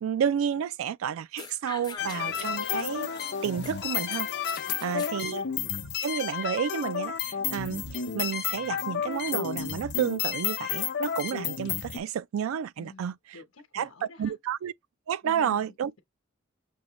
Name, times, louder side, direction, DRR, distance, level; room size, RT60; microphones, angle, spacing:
voice 1, 0.0-3.1 3.4-4.3 4.8-5.4 6.0-13.1 13.7-13.9 14.2-14.7 15.1-15.9, right 8 dB, 80° right, 0.3 m, -31 dB
sound 1, 1.4-3.7 4.1-5.1, left 6 dB, 20° left, 0.5 m, -43 dB
sound 2, 2.0-12.0, left 8 dB, 55° left, 0.7 m, -31 dB
voice 2, 4.5-5.2 12.8-14.4 15.2-16.0, left 3 dB, 85° left, 0.9 m, -50 dB
6.3 x 2.1 x 3.0 m
head